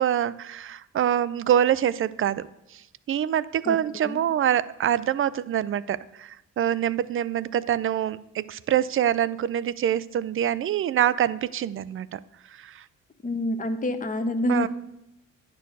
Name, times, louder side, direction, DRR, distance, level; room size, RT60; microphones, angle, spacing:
voice 1, 0.0-2.4 2.7-2.8 3.1-12.2 12.5-12.8 14.5-14.7, right 10 dB, 45° right, 17 dB, 0.4 m, -25 dB
voice 2, 13.2-14.7, left 1 dB, 25° left, 8 dB, 0.9 m, -27 dB
9.9 x 4.5 x 6.6 m, 0.87 s
cardioid pair, 90°, 30 cm